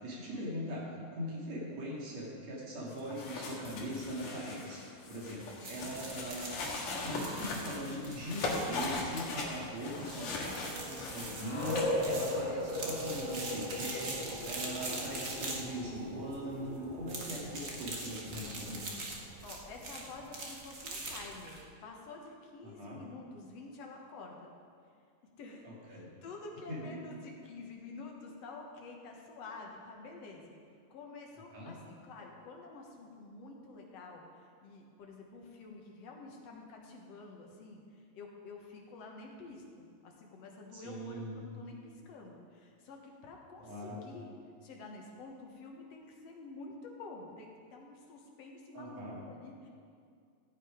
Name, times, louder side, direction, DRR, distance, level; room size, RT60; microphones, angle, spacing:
voice 1, 0.0-4.8 5.1-6.5 7.0-14.2 14.4-18.9 22.6-23.0 25.6-26.1 26.7-27.0 31.5-31.8 40.7-41.5 43.6-44.0 48.7-49.2, equal, 55° right, -3 dB, 3.3 m, -41 dB
sound 1, 2.9-12.0, left 2 dB, 75° left, 3.2 m, -40 dB
sound 2, 5.6-21.6, right 2 dB, 75° right, 0.7 m, -43 dB
sound 3, 9.3-20.4, left 1 dB, 30° left, 2.9 m, -40 dB
voice 2, 19.4-24.5 25.4-30.6 30.9-34.2 34.6-44.3 44.6-49.7, left 3 dB, 60° left, 0 dB, 2.2 m, -49 dB
15.0 x 8.7 x 5.0 m, 2.2 s
omnidirectional pair, 3.8 m